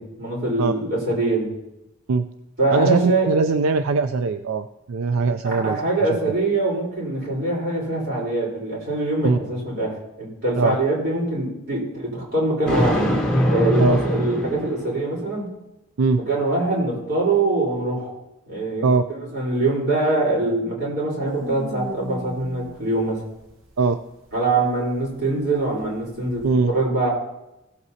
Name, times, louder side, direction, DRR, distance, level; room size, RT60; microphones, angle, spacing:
voice 1, 0.0-1.5 2.6-3.3 5.4-13.1 13.5-15.5 16.3-18.1 18.5-23.2 24.3-27.1, right 2 dB, 50° right, -4 dB, 4.2 m, -23 dB
voice 2, 2.7-5.8 9.2-9.4 10.6-10.8 13.8-14.0 16.0-16.2 18.8-19.0 23.8-24.0 26.4-26.7, right 4 dB, 85° right, 9 dB, 0.4 m, -21 dB
Thunder, 12.7-15.2, equal, 5° left, 1.8 m, -21 dB
sound 1, 21.2-26.5, right 1 dB, 70° right, 1.1 m, -38 dB
16.5 x 7.9 x 2.8 m, 0.93 s
head